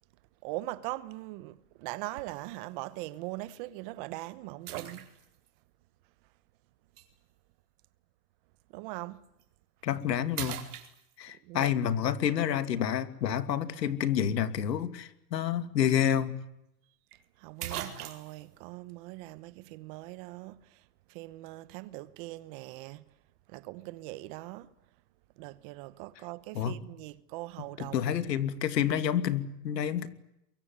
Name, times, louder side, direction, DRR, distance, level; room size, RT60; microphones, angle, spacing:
voice 1, 0.4-5.1 8.7-9.2 11.4-11.7 17.4-20.8 21.1-23.0 23.5-24.7 25.4-28.0, right 19 dB, 30° right, 1.0 m, -41 dB
sound 1, 2.2-2.5 3.1-3.2 4.7-5.5 7.0-7.1 9.2-9.4 9.9-10.0 10.3-11.4 15.5-15.6 15.9-16.0 17.1-17.2 17.6-18.5, right 10 dB, 65° right, 4.6 m, -40 dB
voice 2, 9.8-10.6 11.2-16.4 26.5-26.8 27.8-30.1, left 9 dB, 80° left, 2.6 m, -29 dB
23.5 x 23.5 x 9.6 m
hypercardioid pair, 150°, 49 cm